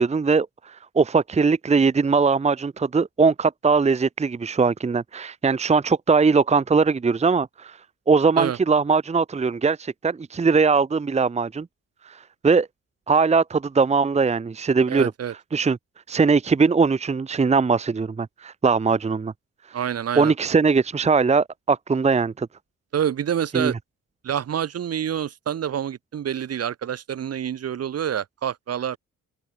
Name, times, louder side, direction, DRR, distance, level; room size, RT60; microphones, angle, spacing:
voice 1, 0.0-7.8 8.1-11.7 12.1-12.7 13.1-15.1 15.5-15.8 16.1-19.3 20.2-22.5 23.5-23.7, right 4 dB, 20° right, 0.9 m, -20 dB
voice 2, 14.9-15.3 19.7-20.3 22.9-23.8 24.2-29.0, right 9 dB, 55° right, 1.8 m, -27 dB
cardioid pair, 90°, 30 cm